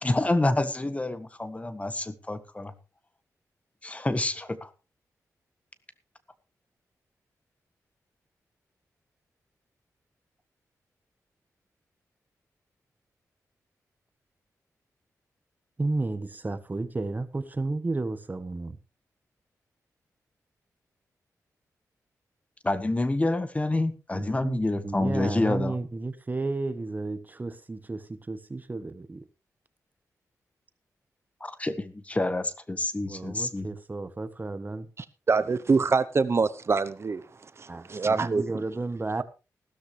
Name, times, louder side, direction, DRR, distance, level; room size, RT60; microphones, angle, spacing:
voice 1, 0.0-2.7 3.8-4.7 22.6-25.8 31.4-33.7, left 2 dB, 20° left, 1.5 m, -28 dB
voice 2, 15.8-18.8 24.1-29.2 33.1-34.9 37.7-39.2, right 3 dB, 30° right, 1.3 m, -32 dB
voice 3, 35.3-37.2 37.6-38.4, right 4 dB, 45° right, 0.9 m, -24 dB
15.5 x 13.0 x 3.3 m
cardioid pair, 85°, 6 cm